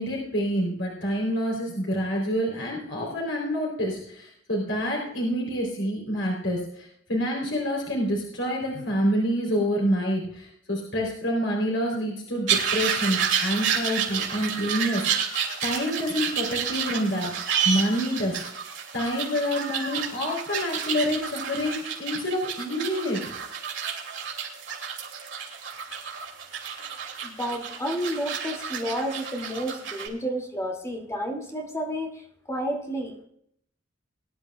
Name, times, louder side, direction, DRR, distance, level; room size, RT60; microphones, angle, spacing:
voice 1, 0.0-17.3 17.6-18.4 18.9-23.2, equal, 75° left, -2 dB, 3.9 m, -27 dB
sound 1, 12.5-30.1, right 7 dB, 70° right, 2.8 m, -30 dB
voice 2, 27.2-32.2 32.5-33.3, equal, 15° left, 0 dB, 2.7 m, -31 dB
21.5 x 11.0 x 2.4 m, 0.69 s
head